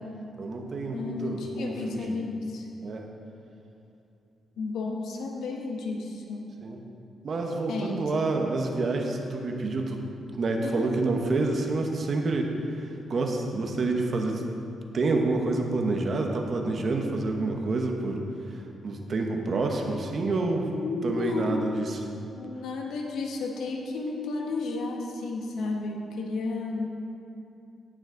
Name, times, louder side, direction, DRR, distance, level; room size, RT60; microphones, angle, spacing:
voice 1, 0.4-2.2 2.8-3.1 6.6-6.8 7.2-10.0 10.4-12.5 13.1-14.4 14.9-18.2 18.5-20.7 21.0-22.0, right 3 dB, 50° right, 2 dB, 1.1 m, -28 dB
voice 2, 0.9-2.7 4.6-6.4 7.7-8.2 10.6-10.9 20.7-21.7 22.3-26.9, left 3 dB, 90° left, 0 dB, 1.4 m, -32 dB
17.0 x 6.2 x 3.9 m, 2.7 s
cardioid pair, 115°, 0 cm